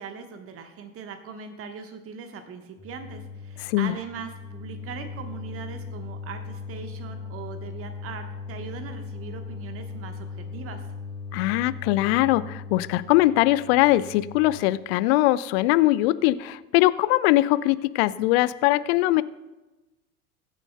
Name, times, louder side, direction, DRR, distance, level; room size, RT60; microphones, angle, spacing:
voice 1, 0.0-10.8, right 6 dB, 30° right, 7 dB, 1.2 m, -40 dB
sound 1, 2.8-14.6, left 5 dB, 10° left, 1.4 m, -38 dB
voice 2, 3.6-3.9 11.3-19.2, left 17 dB, 45° left, 17 dB, 0.5 m, -21 dB
21.5 x 8.9 x 2.2 m, 1.1 s
figure-of-eight pair, 75°, 44 cm